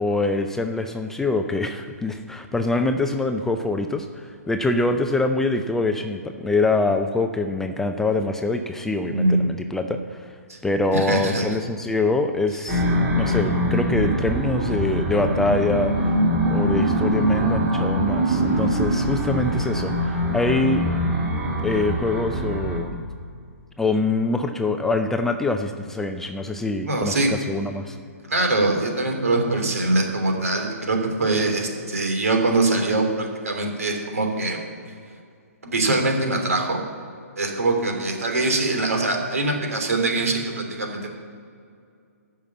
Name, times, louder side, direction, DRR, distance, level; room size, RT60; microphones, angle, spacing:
voice 1, 0.0-10.4 10.6-12.9 13.1-16.1 16.5-21.2 21.6-23.0 23.8-28.0, left 2 dB, 5° left, 5 dB, 0.5 m, -24 dB
voice 2, 9.0-9.5 10.5-10.6 10.9-11.5 26.8-27.3 28.2-34.6 35.6-36.8 37.4-41.1, right 2 dB, 65° right, 3 dB, 3.2 m, -23 dB
sound 1, 12.7-22.8, equal, 20° right, 3.0 m, -23 dB
13.0 x 5.8 x 8.4 m, 2.3 s
figure-of-eight pair, 130°, 8 cm